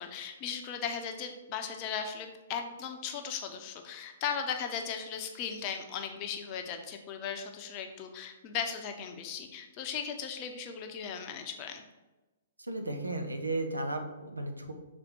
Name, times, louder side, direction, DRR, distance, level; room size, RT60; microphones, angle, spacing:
voice 1, 0.0-11.8, left 7 dB, 30° left, 5 dB, 0.8 m, -37 dB
voice 2, 12.7-14.7, right 2 dB, 80° right, 5 dB, 0.9 m, -34 dB
6.4 x 4.2 x 4.5 m, 1.1 s
figure-of-eight pair, 115°, 0 cm